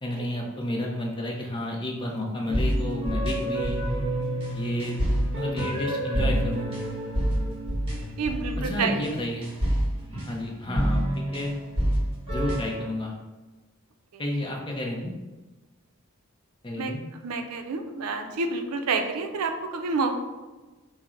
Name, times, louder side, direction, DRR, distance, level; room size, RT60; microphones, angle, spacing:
voice 1, 0.0-3.8 4.5-5.0 5.3-6.7 8.6-9.5 10.3-11.5 12.3-13.1 14.2-15.1 16.6-17.0, left 1 dB, 20° left, 0 dB, 0.6 m, -31 dB
sound 1, 2.4-12.8, equal, 25° right, 1.0 m, -28 dB
voice 2, 8.2-9.0 14.1-14.2 16.8-17.0 17.2-20.2, right 4 dB, 85° right, 6 dB, 0.5 m, -28 dB
4.3 x 2.0 x 3.7 m, 1.2 s
head